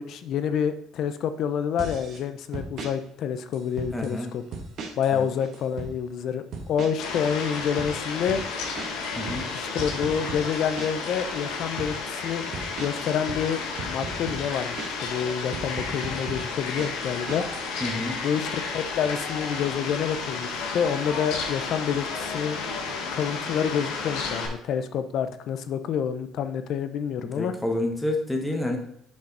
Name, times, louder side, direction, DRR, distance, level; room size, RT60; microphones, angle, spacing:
voice 1, 0.0-4.4 5.0-8.4 9.5-12.5 12.8-13.6 13.9-17.5 18.2-22.6 23.1-27.5, left 8 dB, 60° left, 11 dB, 0.7 m, -28 dB
sound 1, 1.8-2.2 2.5-2.9 3.5-4.1 4.5-5.1 5.4-5.9 6.5-7.1 7.4-11.1 11.5-11.9 12.5-15.1 15.5-17.7, right 4 dB, 55° right, 1.5 m, -37 dB
voice 2, 3.9-4.3 5.1-5.3 9.2-9.5 17.8-18.2 27.2-28.8, left 1 dB, 10° left, 3 dB, 1.4 m, -29 dB
Fowl, 7.0-24.5, left 4 dB, 85° left, 1.6 m, -32 dB
7.0 x 5.3 x 4.1 m, 0.74 s
cardioid pair, 120°, 0 cm